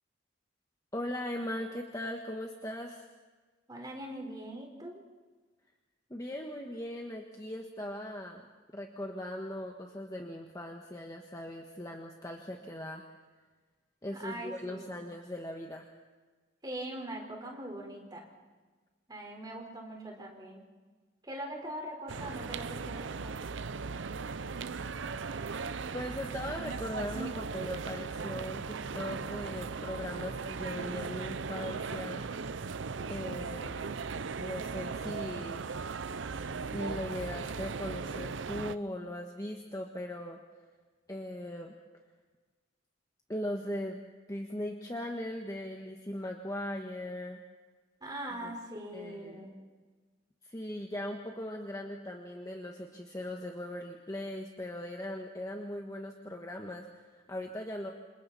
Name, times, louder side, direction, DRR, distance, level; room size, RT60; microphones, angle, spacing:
voice 1, 0.9-3.0 6.1-8.4 8.7-13.0 14.0-15.9 25.9-32.2 33.1-33.8 34.4-35.7 36.7-40.4 41.1-41.7 43.3-44.0 44.3-47.4 48.3-48.5 48.9-49.5 50.4-57.9, left 1 dB, 20° left, 1 dB, 1.5 m, -39 dB
voice 2, 3.7-5.0 14.1-15.0 16.6-18.3 19.1-20.6 21.2-23.3 48.0-49.5, right 1 dB, 20° right, 0 dB, 4.4 m, -42 dB
sound 1, 22.1-38.8, right 4 dB, 75° right, 0.6 m, -38 dB
28.0 x 27.5 x 4.2 m, 1.4 s
head